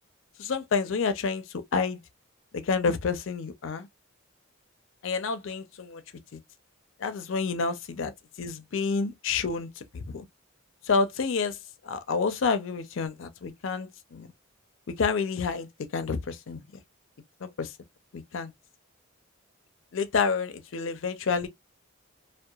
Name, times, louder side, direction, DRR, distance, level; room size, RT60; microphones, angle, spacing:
voice 1, 0.4-2.0 2.5-3.9 5.0-6.0 7.0-8.1 8.4-10.3 10.9-11.6 11.8-14.3 15.0-15.7 15.9-16.6 17.4-17.7 18.1-18.5 19.9-21.5, left 5 dB, 65° left, 0.4 m, -29 dB
2.7 x 2.2 x 2.2 m
head